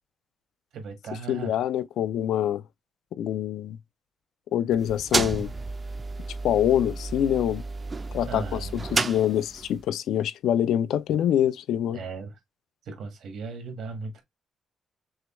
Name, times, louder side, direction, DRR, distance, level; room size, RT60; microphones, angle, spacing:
voice 1, 0.7-1.5 8.3-8.9 11.9-12.3 12.8-14.2, right 4 dB, 75° right, 1.5 m, -37 dB
voice 2, 1.3-2.6 3.1-3.8 4.5-5.5 6.4-7.6 8.1-12.0, left 10 dB, 90° left, 0.4 m, -25 dB
sound 1, 4.7-9.8, right 3 dB, 25° right, 0.4 m, -31 dB
6.2 x 2.3 x 3.0 m
cardioid pair, 150°, 0 cm